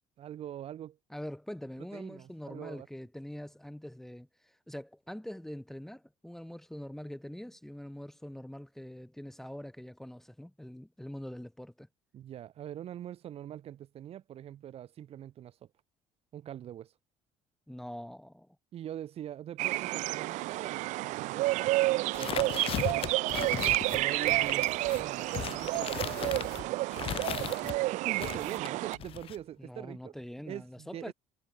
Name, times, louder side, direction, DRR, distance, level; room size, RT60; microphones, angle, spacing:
voice 1, 0.2-1.0 1.9-2.9 12.1-15.7 16.3-16.9 18.7-22.6 22.9-23.1 23.9-27.1 27.9-30.1 30.4-31.1, right 11 dB, 55° right, 5.1 m, -43 dB
voice 2, 1.1-11.9 17.7-18.6 29.6-31.1, equal, 5° left, 2.6 m, -44 dB
sound 1, 19.6-29.0, right 19 dB, 75° right, 0.9 m, -30 dB
sound 2, 22.1-27.8 28.2-29.4, left 10 dB, 50° left, 1.0 m, -37 dB
cardioid pair, 115°, 13 cm